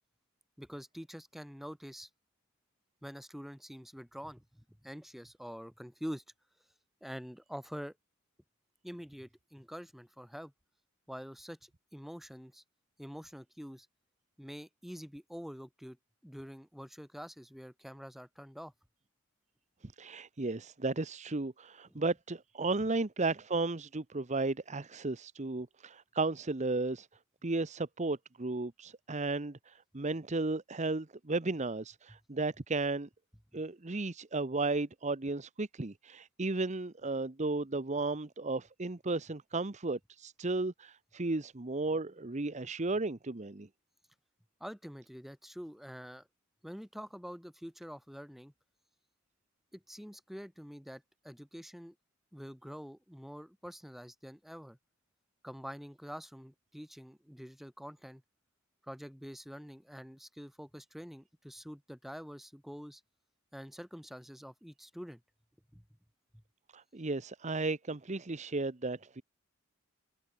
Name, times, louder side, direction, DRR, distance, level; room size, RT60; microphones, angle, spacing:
voice 1, 0.6-2.1 3.0-6.2 7.0-8.0 8.8-10.5 11.1-12.6 13.0-13.9 14.4-16.0 16.2-18.7 21.9-22.0 44.6-46.3 46.6-48.5 49.7-52.0 52.3-54.8 55.4-58.2 58.8-63.0 63.5-65.2 65.7-65.8, equal, ahead, 3.8 m, -46 dB
voice 2, 20.0-27.1 27.4-33.1 33.5-43.7 66.7-69.2, right 3 dB, 35° right, 0.9 m, -34 dB
open air
head